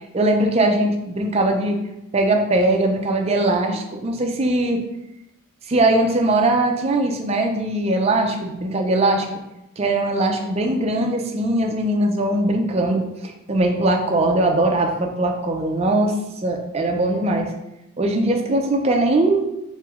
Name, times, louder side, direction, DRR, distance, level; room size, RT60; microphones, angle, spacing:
voice 1, 0.1-1.8 2.1-4.8 5.7-9.3 9.8-13.1 13.5-16.1 16.4-17.5 18.0-19.5, right 2 dB, 30° right, 3 dB, 0.4 m, -20 dB
3.1 x 2.9 x 3.5 m, 0.89 s
head